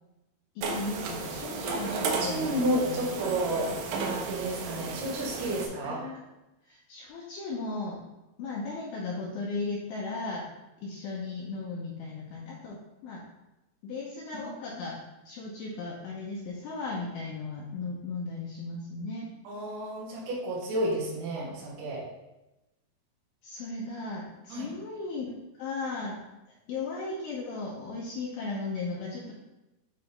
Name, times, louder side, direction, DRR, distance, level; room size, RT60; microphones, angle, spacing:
voice 1, 0.6-3.0 5.8-6.2 6.7-8.0 8.4-10.5 10.8-12.8 13.0-13.2 13.8-15.0 15.3-19.3 23.4-25.3 25.5-26.2 26.7-29.3, left 3 dB, 85° left, -4 dB, 2.1 m, -36 dB
sound 1, 0.6-5.7, right 4 dB, 90° right, 3.3 m, -34 dB
voice 2, 2.0-6.0 14.3-14.5 19.5-22.0 24.5-24.7, right 1 dB, 65° right, -5 dB, 3.4 m, -31 dB
8.9 x 3.9 x 3.3 m, 0.98 s
omnidirectional pair, 5.4 m